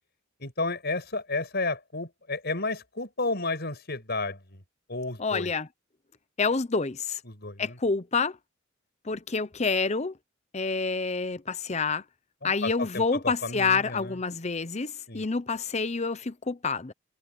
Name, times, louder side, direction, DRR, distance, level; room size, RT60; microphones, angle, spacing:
voice 1, 0.4-4.6 4.9-5.5 7.3-7.8 12.4-14.2 15.1-15.2, left 3 dB, 55° left, 6.5 m, -32 dB
voice 2, 5.2-5.7 6.4-7.2 7.6-8.4 9.0-10.2 10.5-12.0 12.4-16.9, left 4 dB, 35° left, 0.8 m, -28 dB
head